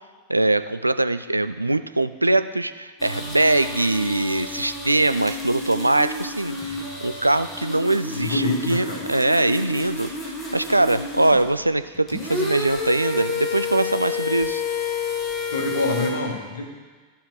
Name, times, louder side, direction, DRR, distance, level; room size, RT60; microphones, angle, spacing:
voice 1, 0.3-10.1 10.5-14.6, right 2 dB, 85° right, 11 dB, 0.3 m, -22 dB
sound 1, 3.0-11.5 11.9-16.1, left 3 dB, 15° left, 1.7 m, -30 dB
voice 2, 8.1-9.0 15.5-16.7, left 2 dB, 70° left, 1 dB, 1.5 m, -26 dB
14.5 x 5.6 x 3.3 m, 1.4 s
figure-of-eight pair, 90°, 0 cm